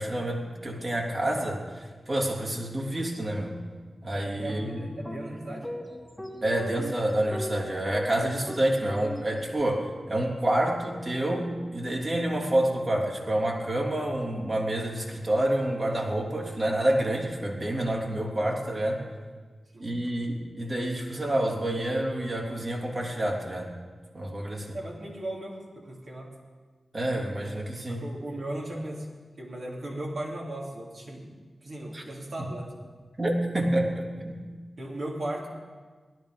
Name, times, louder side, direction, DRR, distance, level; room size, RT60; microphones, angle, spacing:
voice 1, 0.0-3.6 4.0-4.8 6.4-19.0 19.8-23.7 24.1-24.8 26.9-28.1 31.9-32.0 33.2-34.5, right 1 dB, 45° right, -1 dB, 3.3 m, -28 dB
voice 2, 4.3-5.7 19.7-19.9 24.4-26.3 27.9-29.1 29.4-32.7 34.8-35.5, right 1 dB, 65° right, -2 dB, 3.5 m, -37 dB
sound 1, 4.4-9.6, equal, 5° left, 1.5 m, -40 dB
17.5 x 12.0 x 5.3 m, 1.5 s
cardioid pair, 45°, 0 cm